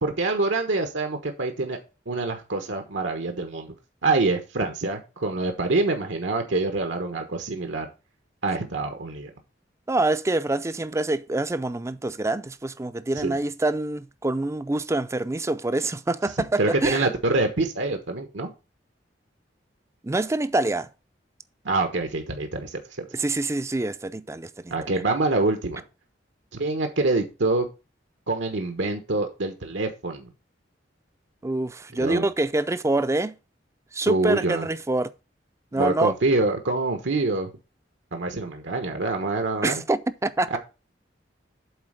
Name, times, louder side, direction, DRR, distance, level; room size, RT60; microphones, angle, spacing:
voice 1, 0.0-1.8 2.1-3.7 4.0-7.9 8.4-9.3 13.2-13.4 16.6-18.5 21.6-23.1 24.7-25.8 26.5-27.7 28.3-30.3 32.0-32.3 34.1-34.7 35.7-37.5 38.1-39.8 40.5-40.6, right 3 dB, 80° right, 1.2 m, -25 dB
voice 2, 9.9-17.1 20.0-20.9 23.1-24.7 31.4-33.3 33.9-35.1 35.7-36.1 39.6-40.6, right 2 dB, 15° right, 0.4 m, -26 dB
7.9 x 4.0 x 6.5 m
head